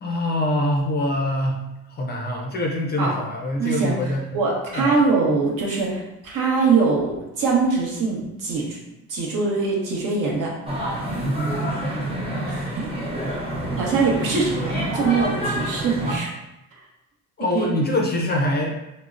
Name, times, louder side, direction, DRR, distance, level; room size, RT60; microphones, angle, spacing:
voice 1, 0.0-1.6 2.0-4.2 4.7-5.0 17.4-18.7, left 1 dB, 30° left, 0 dB, 0.4 m, -24 dB
voice 2, 3.6-4.0 4.3-8.8 9.1-10.5 12.4-12.9 13.8-16.3 17.5-17.7, right 4 dB, 65° right, -2 dB, 0.9 m, -22 dB
sound 1, 10.7-16.2, right 1 dB, 15° right, 0.8 m, -27 dB
3.6 x 2.0 x 2.4 m, 0.93 s
cardioid pair, 120°, 34 cm